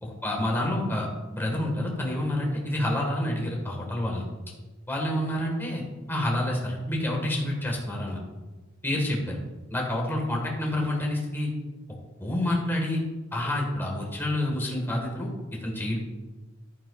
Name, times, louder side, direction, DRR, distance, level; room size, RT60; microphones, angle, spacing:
voice 1, 0.0-4.2 4.9-5.8 6.1-8.2 8.8-9.4 9.7-11.5 12.2-13.0 13.3-16.0, left 1 dB, 10° left, -1 dB, 1.5 m, -28 dB
11.0 x 8.9 x 2.4 m, 1.2 s
head